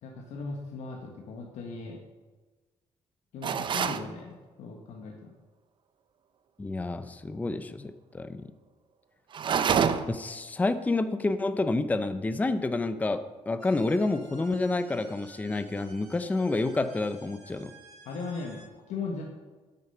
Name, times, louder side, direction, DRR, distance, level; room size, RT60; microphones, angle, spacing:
voice 1, 0.0-2.0 3.3-5.3 18.0-19.2, left 4 dB, 80° left, 0 dB, 1.5 m, -38 dB
sound 1, 3.4-4.1 9.3-10.2, right 7 dB, 45° right, 0.6 m, -26 dB
voice 2, 6.6-8.4 10.1-17.7, left 2 dB, 15° left, 11 dB, 0.5 m, -29 dB
sound 2, 13.6-18.7, right 3 dB, 70° right, 2.9 m, -54 dB
10.0 x 8.9 x 5.6 m, 1.3 s
cardioid pair, 130°, 12 cm